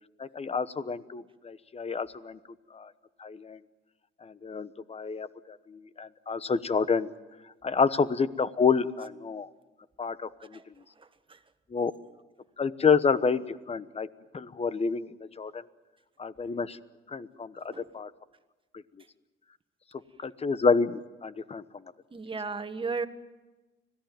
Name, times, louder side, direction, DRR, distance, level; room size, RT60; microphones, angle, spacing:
voice 1, 0.2-2.4 2.7-2.9 3.2-3.6 4.2-7.1 7.6-9.5 10.0-10.6 11.7-11.9 12.6-14.1 14.3-15.1 15.4-15.6 16.2-16.8 17.1-18.1 20.2-21.6, left 5 dB, 30° left, 14 dB, 1.1 m, -28 dB
voice 2, 11.0-11.4 17.7-17.9 22.1-23.1, right 4 dB, 25° right, 10 dB, 1.6 m, -35 dB
25.5 x 17.0 x 9.2 m, 1.2 s
cardioid pair, 90°, 20 cm